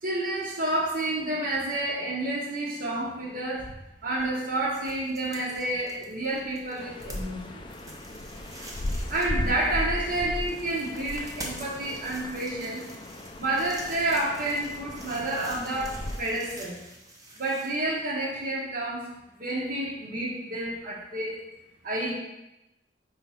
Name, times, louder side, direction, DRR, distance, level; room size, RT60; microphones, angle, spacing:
voice 1, 0.0-3.7 4.0-7.6 9.1-12.9 13.4-16.8 17.4-19.1 19.4-21.4 21.8-22.1, right 1 dB, 50° right, -4 dB, 1.0 m, -29 dB
sound 1, 3.2-18.4, right 1 dB, 20° right, 0.9 m, -47 dB
sound 2, 6.8-16.2, left 1 dB, 25° left, 0.5 m, -36 dB
4.9 x 3.6 x 5.6 m, 0.92 s
head